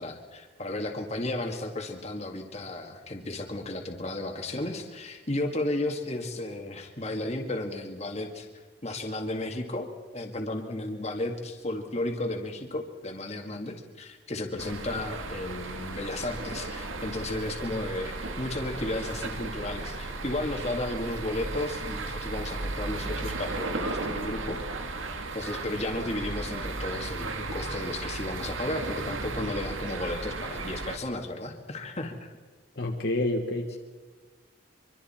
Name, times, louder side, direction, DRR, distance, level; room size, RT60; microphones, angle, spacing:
voice 1, 0.0-8.5 8.8-9.9 10.1-24.6 25.3-32.4, left 1 dB, 35° left, 3 dB, 1.9 m, -33 dB
sound 1, 14.6-31.0, right 3 dB, 85° right, 1.9 m, -35 dB
voice 2, 32.8-33.8, left 1 dB, 55° left, 2 dB, 1.6 m, -28 dB
24.5 x 24.5 x 4.4 m, 1.3 s
head